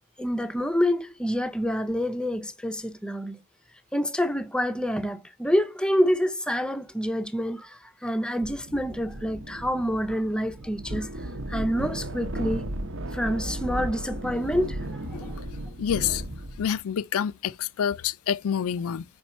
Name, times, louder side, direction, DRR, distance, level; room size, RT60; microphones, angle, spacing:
voice 1, 0.2-3.4 3.9-12.7 13.1-15.0, equal, 5° left, 0.5 m, -27 dB
sound 1, 8.4-16.8, right 1 dB, 60° right, 0.8 m, -35 dB
voice 2, 15.8-16.2 16.6-19.0, left 8 dB, 75° left, 0.4 m, -27 dB
5.0 x 4.4 x 5.4 m
head